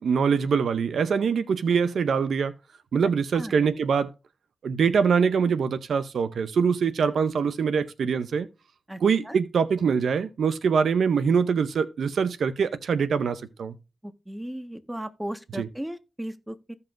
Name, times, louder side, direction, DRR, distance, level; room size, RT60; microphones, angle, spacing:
voice 1, 0.0-2.5 2.9-4.1 4.6-8.5 9.0-13.7 15.6-15.7, right 6 dB, 90° right, 0.6 m, -24 dB
voice 2, 3.0-3.6 8.9-9.4 14.0-16.7, right 1 dB, 10° right, 1.4 m, -37 dB
15.5 x 5.4 x 2.5 m
cardioid pair, 45°, 0 cm